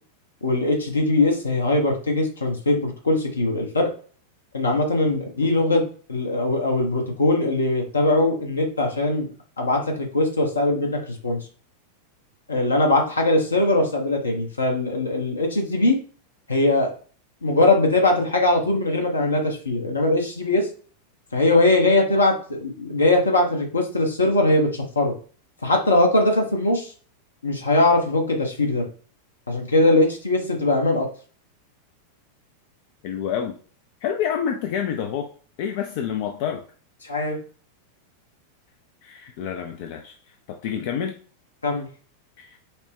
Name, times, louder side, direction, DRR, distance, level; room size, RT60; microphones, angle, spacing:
voice 1, 0.4-3.9 4.5-9.3 9.6-11.4 12.5-16.0 16.5-16.9 17.4-20.7 21.3-25.1 25.6-26.9 27.4-28.8 29.5-31.1 37.0-37.4 41.6-41.9, left 2 dB, 75° left, 2 dB, 1.0 m, -21 dB
voice 2, 33.0-33.6 34.0-35.3 35.6-36.6 39.0-41.2 42.4-42.6, left 8 dB, 50° left, 5 dB, 0.4 m, -28 dB
5.5 x 2.2 x 3.6 m, 0.42 s
figure-of-eight pair, 90°, 0 cm